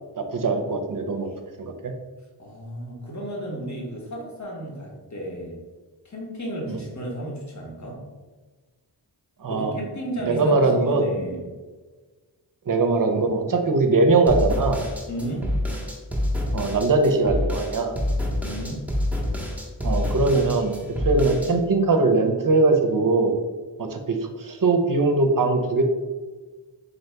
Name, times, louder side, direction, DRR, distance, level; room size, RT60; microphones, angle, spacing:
voice 1, 0.2-1.3 1.6-1.9 6.7-6.8 9.4-9.8 10.2-11.0 12.7-14.8 16.5-17.9 19.8-20.7 21.0-23.3 23.8-25.8, right 3 dB, 50° right, 5 dB, 0.6 m, -21 dB
voice 2, 2.4-5.6 6.0-8.0 9.5-11.4 15.1-15.5 18.4-18.9, right 1 dB, 40° left, -2 dB, 1.1 m, -33 dB
sound 1, 14.3-21.5, left 1 dB, 5° right, 0.8 m, -27 dB
4.0 x 2.7 x 3.3 m, 1.3 s
wide cardioid pair, 45°, 43 cm